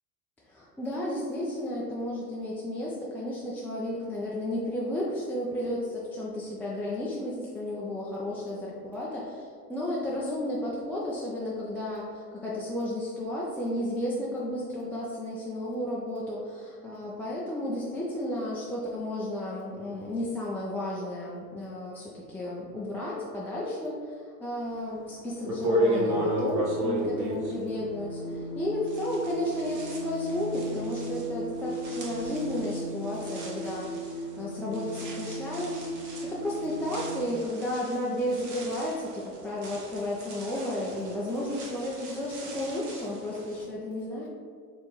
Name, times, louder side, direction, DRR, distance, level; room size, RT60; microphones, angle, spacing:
voice 1, 0.5-34.1 34.4-44.3, left 1 dB, 5° left, -7 dB, 0.4 m, -33 dB
sound 1, 24.9-25.0 25.4-28.6 28.9-43.6, equal, 40° right, 1.1 m, -35 dB
sound 2, 26.0-37.2, right 1 dB, 40° left, 0.7 m, -37 dB
4.5 x 3.6 x 3.0 m, 2.2 s
hypercardioid pair, 80°, 47 cm